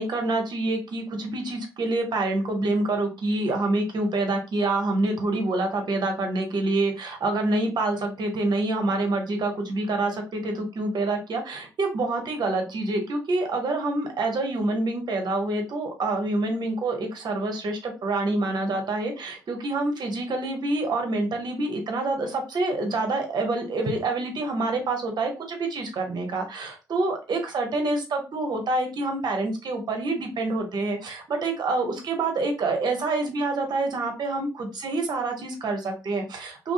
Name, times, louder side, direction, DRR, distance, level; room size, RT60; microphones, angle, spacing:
voice 1, 0.0-36.7, right 2 dB, 55° right, 4 dB, 0.9 m, -27 dB
2.6 x 2.1 x 2.4 m, 0.29 s
hypercardioid pair, 50°, 9 cm